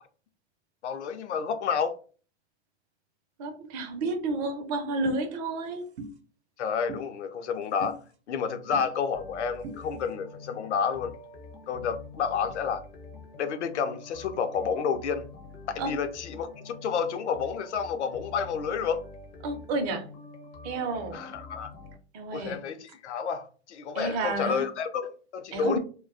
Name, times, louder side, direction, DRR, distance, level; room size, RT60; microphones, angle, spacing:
voice 1, 0.8-2.0 6.6-8.0 8.3-11.1 11.7-12.8 13.4-15.3 15.7-19.0 21.1-21.7 22.3-25.8, left 6 dB, 75° left, 0.5 m, -30 dB
voice 2, 3.4-5.9 15.8-15.9 19.4-20.1 20.6-21.2 22.1-22.6 23.9-24.7 25.5-25.8, right 2 dB, 35° right, 0.6 m, -31 dB
sound 1, 5.1-5.2 6.0-6.1 6.9-7.0 7.8-8.0 8.7-8.9 9.6-9.8, right 2 dB, 70° right, 0.7 m, -38 dB
sound 2, 9.1-22.0, left 3 dB, 25° left, 0.5 m, -46 dB
2.3 x 2.2 x 2.4 m
hypercardioid pair, 120°, 35 cm